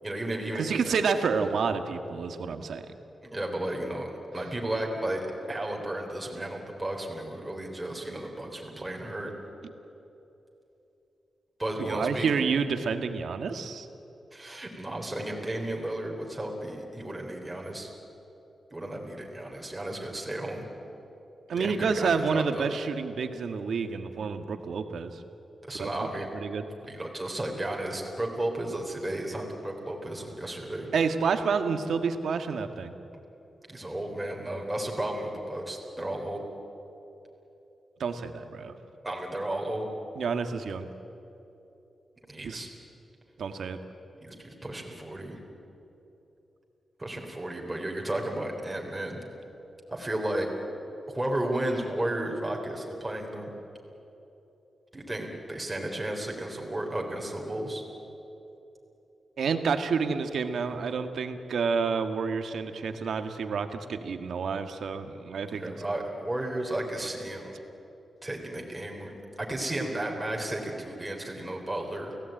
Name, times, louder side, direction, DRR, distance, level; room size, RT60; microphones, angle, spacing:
voice 1, 0.0-0.9 3.2-9.3 11.6-12.3 14.3-17.9 18.7-20.7 21.6-22.7 25.6-26.3 26.9-30.9 33.7-36.4 39.0-39.9 42.3-42.7 44.2-45.4 47.0-49.2 49.9-50.5 51.1-53.5 54.9-57.8 65.5-67.5 68.2-69.1 69.4-72.1, right 1 dB, 10° right, 0 dB, 3.7 m, -33 dB
voice 2, 0.5-2.8 11.8-13.9 21.5-25.2 25.8-26.7 30.9-32.9 38.0-38.7 40.1-40.9 42.4-42.6 43.4-43.8 59.4-65.7, right 5 dB, 75° right, 7 dB, 1.6 m, -29 dB
29.5 x 17.0 x 9.1 m, 3.0 s
wide cardioid pair, 140°, 0 cm